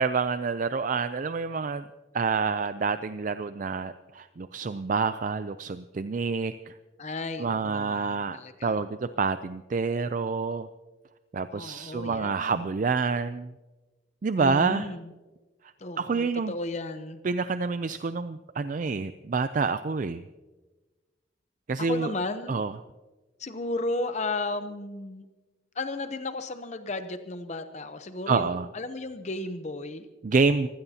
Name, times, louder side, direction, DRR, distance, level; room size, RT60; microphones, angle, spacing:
voice 1, 0.0-1.8 2.1-6.7 7.4-10.7 11.3-13.5 14.2-14.9 16.0-16.5 17.2-20.2 21.7-22.1 22.5-22.7 28.3-28.7 30.2-30.7, right 4 dB, 40° right, 12 dB, 0.4 m, -28 dB
voice 2, 7.0-8.8 11.5-12.6 14.4-15.1 15.8-17.2 21.8-22.6 23.4-25.2 25.8-30.1, left 2 dB, 35° left, 9 dB, 0.7 m, -34 dB
24.0 x 16.0 x 2.8 m, 1.2 s
head